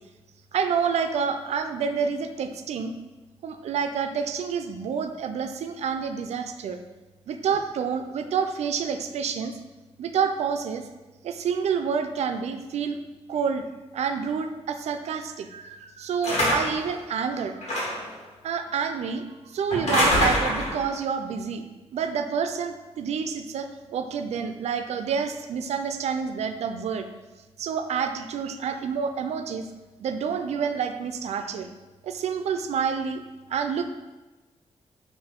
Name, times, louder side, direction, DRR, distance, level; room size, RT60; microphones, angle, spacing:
voice 1, 0.5-2.9 3.4-6.8 7.3-9.5 10.0-10.8 11.2-13.0 13.3-13.7 13.9-17.6 18.4-19.2 19.5-21.6 21.9-27.1 27.6-29.7 30.0-31.7 32.0-33.2 33.5-33.9, right 6 dB, 85° right, 7 dB, 0.4 m, -28 dB
sound 1, 16.2-16.9 17.6-18.1 19.7-20.8, equal, 80° left, 1.4 m, -24 dB
5.5 x 2.5 x 3.6 m, 1.2 s
wide cardioid pair, 140°, 11 cm